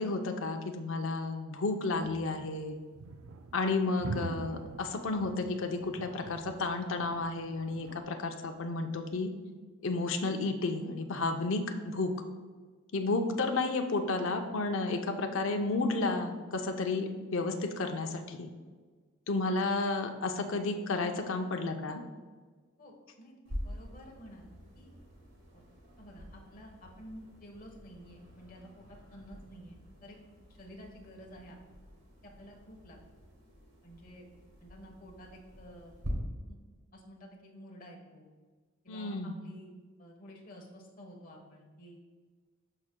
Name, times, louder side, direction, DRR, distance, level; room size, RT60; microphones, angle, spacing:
voice 1, 0.0-2.8 3.5-9.3 9.8-12.1 12.9-18.5 19.3-22.0 38.9-39.4, left 3 dB, 65° left, 4 dB, 0.6 m, -32 dB
sound 1, 2.0-8.0, right 4 dB, 80° right, 0.4 m, -45 dB
voice 2, 22.8-24.5 24.7-24.9 25.5-25.6 26.0-30.2 30.6-31.6 32.2-33.0 33.8-34.3 34.6-35.9 36.5-36.6 36.9-38.3 38.8-39.7 40.0-42.0, equal, 40° left, 0 dB, 1.2 m, -51 dB
sound 2, 23.4-36.1, equal, 60° right, 1.5 m, -47 dB
12.0 x 4.9 x 2.2 m, 1.5 s
head